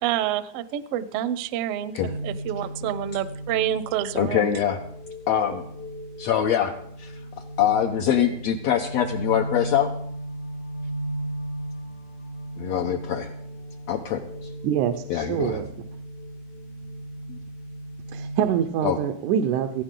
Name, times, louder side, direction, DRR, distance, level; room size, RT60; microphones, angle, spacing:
voice 1, 0.0-2.0 2.2-4.5, right 11 dB, 70° right, 14 dB, 1.5 m, -27 dB
sound 1, 2.0-18.6, right 1 dB, 50° left, 1.2 m, -36 dB
voice 2, 4.2-4.8 5.3-5.6 6.2-7.1 7.6-9.9 12.6-13.3 13.9-14.5 15.1-15.6 17.3-17.4 18.8-19.0, left 10 dB, 70° left, 2 dB, 1.9 m, -24 dB
voice 3, 14.6-15.7 18.1-19.8, right 9 dB, 90° right, 6 dB, 2.3 m, -25 dB
17.5 x 15.0 x 3.8 m, 0.67 s
omnidirectional pair, 3.4 m